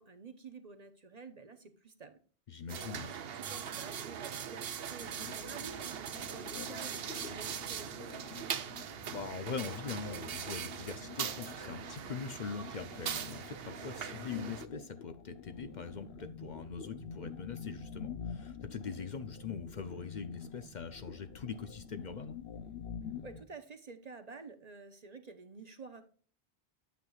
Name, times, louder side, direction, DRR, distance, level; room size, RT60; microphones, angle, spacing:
voice 1, 0.0-2.2 3.0-8.6 23.2-26.0, right 4 dB, 45° right, 9 dB, 0.9 m, -50 dB
voice 2, 2.5-3.2 9.1-22.4, left 5 dB, 50° left, 9 dB, 0.7 m, -42 dB
sound 1, 2.7-14.7, right 8 dB, 75° right, 0.9 m, -41 dB
sound 2, 5.0-23.4, left 8 dB, 85° left, 1.0 m, -48 dB
sound 3, 15.5-23.4, left 2 dB, 5° right, 3.8 m, -52 dB
9.1 x 8.0 x 2.4 m, 0.41 s
omnidirectional pair, 1.0 m